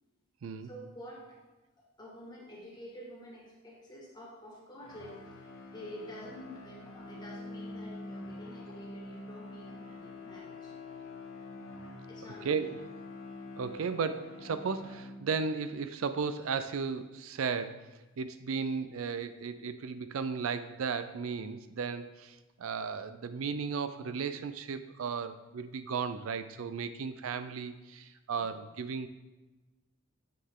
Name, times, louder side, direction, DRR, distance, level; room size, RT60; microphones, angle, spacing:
voice 1, 0.6-1.4 1.8-5.4 5.7-10.7 12.1-12.7 28.3-28.5, equal, 20° left, -3 dB, 1.7 m, -48 dB
sound 1, 4.8-15.6, left 2 dB, 70° left, 1.2 m, -46 dB
voice 2, 12.4-12.8 13.6-17.8 18.2-29.1, right 5 dB, 80° right, 11 dB, 0.4 m, -35 dB
9.7 x 6.5 x 3.7 m, 1.1 s
head